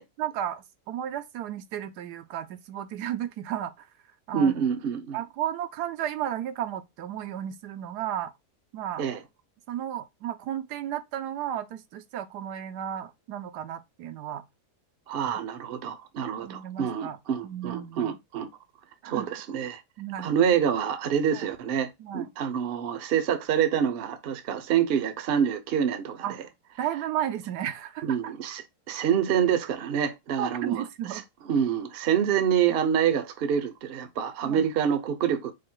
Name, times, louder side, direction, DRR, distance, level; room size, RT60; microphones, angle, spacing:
voice 1, 0.2-3.9 4.3-4.6 5.1-8.3 8.7-9.0 9.7-14.4 16.4-17.2 17.4-18.2 19.0-19.3 20.0-20.3 21.3-21.5 22.0-22.3 26.2-26.4 26.8-28.3 30.4-31.2 34.4-34.6, right 10 dB, 85° right, 1.2 m, -33 dB
voice 2, 4.3-5.2 9.0-9.2 15.1-18.5 19.1-19.8 20.2-26.2 28.0-30.8 31.5-35.5, right 8 dB, 50° right, 0.7 m, -26 dB
4.9 x 2.2 x 4.4 m
omnidirectional pair, 1.7 m